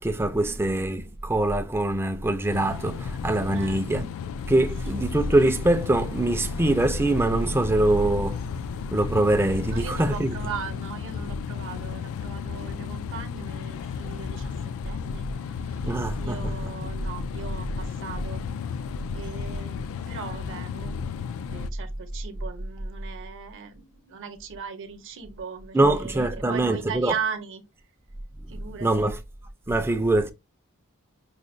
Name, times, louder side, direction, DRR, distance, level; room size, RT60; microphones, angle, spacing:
voice 1, 0.0-4.1 4.5-10.4 15.8-16.7 25.7-27.1 28.4-28.5 28.8-29.2 29.7-30.3, right 1 dB, 10° right, 0.4 m, -23 dB
sound 1, 2.5-21.7, left 7 dB, 65° left, 0.3 m, -34 dB
voice 2, 3.5-3.9 4.9-5.1 9.7-15.9 16.2-18.4 19.1-27.6 28.5-29.1, right 6 dB, 60° right, 0.8 m, -38 dB
5.0 x 2.1 x 2.5 m
head